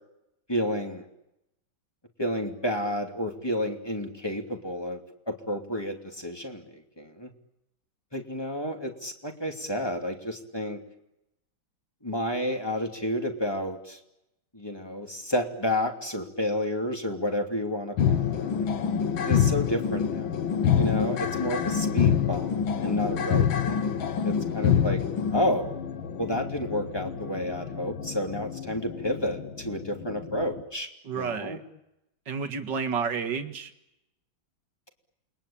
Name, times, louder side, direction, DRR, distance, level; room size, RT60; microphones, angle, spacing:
voice 1, 0.5-1.0 2.2-5.0 5.3-7.3 8.1-10.8 12.0-14.0 14.5-18.7 19.3-20.3 20.7-23.9 24.2-25.0 25.3-25.8 26.2-30.9 31.1-31.6, left 1 dB, 10° left, 3 dB, 2.7 m, -31 dB
sound 1, 18.0-30.6, left 8 dB, 85° left, 2.1 m, -27 dB
voice 2, 31.0-31.6 32.3-33.7, right 6 dB, 65° right, 7 dB, 2.4 m, -30 dB
29.0 x 22.0 x 8.7 m, 0.88 s
omnidirectional pair, 2.1 m